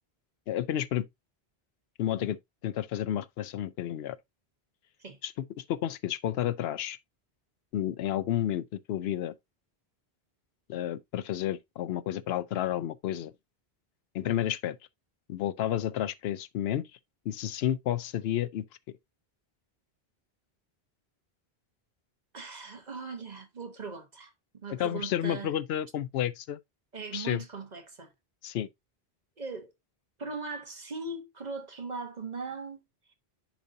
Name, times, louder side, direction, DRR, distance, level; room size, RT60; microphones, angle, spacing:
voice 1, 0.5-1.1 2.0-2.4 2.6-4.2 5.2-7.0 7.7-9.3 10.7-13.3 14.1-14.8 15.3-16.8 17.3-18.6 24.7-26.6 27.1-27.4 28.4-28.7, left 11 dB, 75° left, 0.8 m, -31 dB
voice 2, 22.3-24.3 24.6-25.5 26.9-28.1 29.4-29.7 30.2-32.8, right 4 dB, 45° right, 1.1 m, -39 dB
10.0 x 4.2 x 2.6 m
omnidirectional pair, 1.1 m